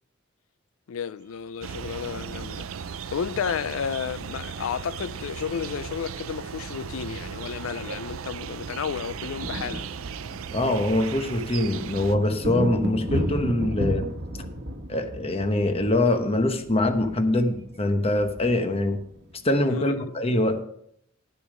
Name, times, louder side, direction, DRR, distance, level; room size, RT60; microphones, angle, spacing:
voice 1, 0.9-9.9 19.7-20.1, left 7 dB, 80° left, 0.4 m, -32 dB
sound 1, 1.6-12.2, right 6 dB, 85° right, 0.5 m, -36 dB
sound 2, 4.3-5.8 7.1-7.2 7.4-7.6 7.9-20.0, equal, 60° right, 1.2 m, -35 dB
voice 2, 10.5-14.1 14.9-19.0 19.4-20.6, left 1 dB, 30° left, 1.0 m, -24 dB
12.0 x 6.9 x 5.0 m
head